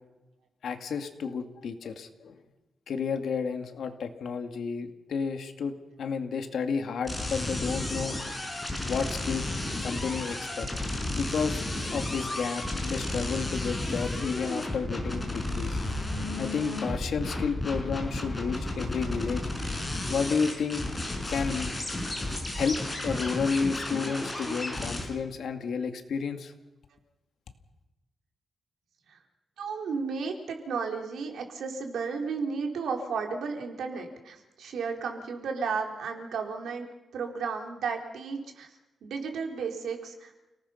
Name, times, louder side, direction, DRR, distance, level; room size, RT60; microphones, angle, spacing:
voice 1, 0.6-2.4 2.9-8.2 8.9-9.5 9.8-10.7 11.1-11.6 11.9-15.8 16.4-19.4 20.1-20.8 21.3-21.7 22.5-26.5, left 5 dB, 65° left, 6 dB, 2.3 m, -31 dB
sound 1, 7.1-25.0, left 1 dB, 10° left, 5.8 m, -32 dB
voice 2, 29.6-36.9 37.1-38.7 39.0-40.3, right 5 dB, 80° right, 3 dB, 4.0 m, -33 dB
30.0 x 19.0 x 5.8 m, 1.0 s
wide cardioid pair, 165°, 0 cm